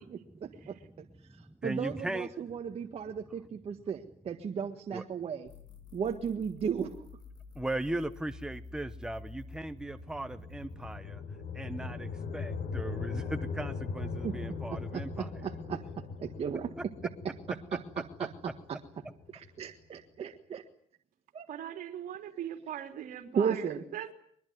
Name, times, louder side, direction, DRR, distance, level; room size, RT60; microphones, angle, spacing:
voice 1, 0.0-5.5 5.9-7.0 14.2-14.4 14.7-16.7 17.7-18.8 19.3-20.6 21.3-21.4 23.3-23.8, right 7 dB, 40° right, 5 dB, 1.6 m, -36 dB
voice 2, 1.3-2.3 4.9-5.0 7.5-11.2 11.5-15.5 16.8-16.9, right 1 dB, 5° right, 10 dB, 1.0 m, -38 dB
sound 1, 5.5-11.0, left 3 dB, 30° left, 4.2 m, -49 dB
sound 2, 9.4-19.7, left 5 dB, 65° left, 4.2 m, -40 dB
voice 3, 21.5-24.1, right 10 dB, 65° right, 6 dB, 3.5 m, -40 dB
22.5 x 21.5 x 9.4 m, 0.63 s
cardioid pair, 125°, 15 cm